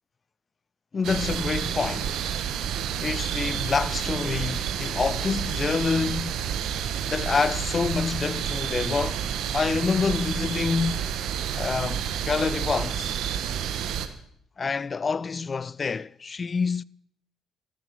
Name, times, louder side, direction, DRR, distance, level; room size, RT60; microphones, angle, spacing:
voice 1, 0.9-2.2 3.0-6.4 7.1-9.2 9.5-11.2 11.5-13.2 14.6-16.8, left 5 dB, 40° left, 0.5 m, -27 dB
sound 1, 1.0-14.1, right 9 dB, 65° right, 1.3 m, -29 dB
13.5 x 13.0 x 6.9 m
hypercardioid pair, 50°, 0 cm